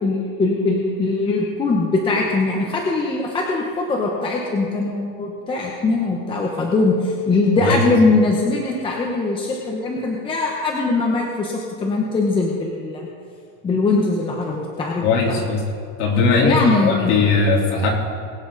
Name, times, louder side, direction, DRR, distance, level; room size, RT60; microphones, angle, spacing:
voice 1, 0.0-13.1 13.6-15.4 16.4-17.1, left 3 dB, 10° left, -1 dB, 1.0 m, -21 dB
voice 2, 15.0-15.6 16.0-17.9, left 4 dB, 40° left, -4 dB, 3.8 m, -19 dB
22.5 x 8.6 x 4.1 m, 2.3 s
supercardioid pair, 160°, 41 cm